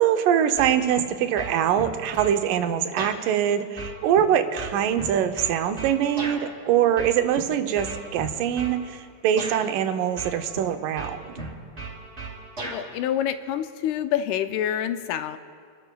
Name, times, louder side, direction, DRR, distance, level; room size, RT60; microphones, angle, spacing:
voice 1, 0.0-11.3, right 9 dB, 90° right, 8 dB, 2.3 m, -23 dB
sound 1, 0.6-1.1 1.4-2.4 3.0-3.2 3.8-6.4 7.0-7.4 7.8-8.8 9.4-9.6 10.2-10.7 11.0-12.8, right 3 dB, 20° right, 2.8 m, -35 dB
voice 2, 12.7-15.4, left 10 dB, 80° left, 9 dB, 2.0 m, -27 dB
29.0 x 12.5 x 2.3 m, 2.1 s
omnidirectional pair, 3.7 m